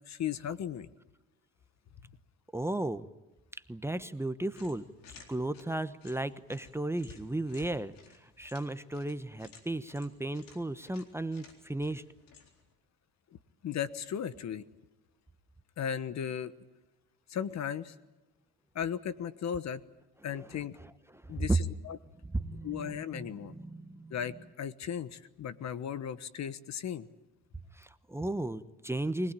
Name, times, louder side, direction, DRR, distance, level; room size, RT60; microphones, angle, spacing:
voice 1, 0.1-0.9 13.6-14.6 15.8-16.5 17.3-17.9 18.7-19.8 20.2-20.8 21.3-22.0 22.6-23.6 24.1-27.1, left 8 dB, 50° left, 15 dB, 1.3 m, -36 dB
voice 2, 2.5-3.1 3.7-4.8 5.3-7.9 8.4-12.0 21.2-21.6 22.3-24.1 27.7-29.3, right 2 dB, 5° right, 11 dB, 1.0 m, -34 dB
sound 1, 4.5-12.7, left 5 dB, 75° left, 4.1 m, -56 dB
25.0 x 19.5 x 8.9 m, 1.1 s
supercardioid pair, 75°, 34 cm